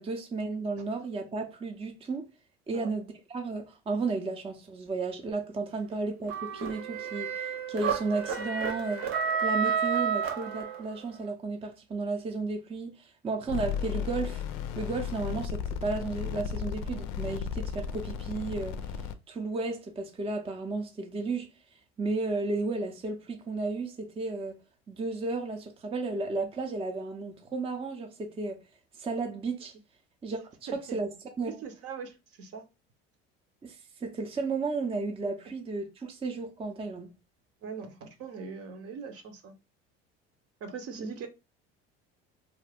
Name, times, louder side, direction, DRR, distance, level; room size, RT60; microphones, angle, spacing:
voice 1, 0.0-2.3 2.7-9.1 9.4-14.4 14.8-21.5 22.0-24.6 24.9-28.6 28.9-29.7 30.2-30.4 30.7-31.1 31.4-31.5 33.6-37.1 41.0-41.1, right 3 dB, 20° right, 0.5 m, -33 dB
sound 1, 6.3-11.1, right 6 dB, 85° right, 0.7 m, -31 dB
sound 2, 13.5-19.1, left 7 dB, 70° left, 0.5 m, -34 dB
voice 2, 31.5-32.6 37.6-39.5 40.6-41.3, right 5 dB, 50° right, 0.7 m, -41 dB
2.4 x 2.1 x 3.3 m
hypercardioid pair, 80°, 31 cm